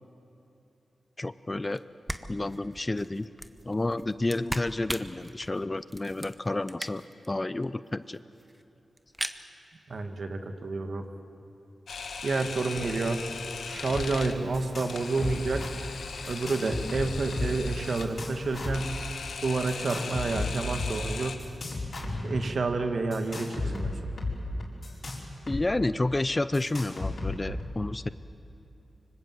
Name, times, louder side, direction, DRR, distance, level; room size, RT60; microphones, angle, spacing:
voice 1, 1.2-1.8 2.3-3.3 3.6-8.2 25.5-28.1, left 2 dB, 25° left, 14 dB, 0.6 m, -30 dB
sound 1, 1.7-1.8 2.1-7.3 7.6-7.7 7.9-8.0 8.2-8.6 9.0-9.4, right 1 dB, 10° right, 1.0 m, -39 dB
voice 2, 9.9-11.0 12.2-13.2 13.7-15.7 16.3-19.0 19.4-21.4 22.2-23.9, right 3 dB, 60° right, 6 dB, 1.9 m, -29 dB
Camera, 11.9-21.4, left 5 dB, 85° left, 1.7 m, -39 dB
sound 2, 13.9-14.1 14.3-14.9 15.2-15.7 16.2-17.6 18.0-18.9 19.7-20.9 21.4-22.5 23.1-25.6 25.9-26.0 26.5-27.6, left 2 dB, 55° left, 4.8 m, -34 dB
25.0 x 25.0 x 7.8 m, 3.0 s
wide cardioid pair, 90°, 0 cm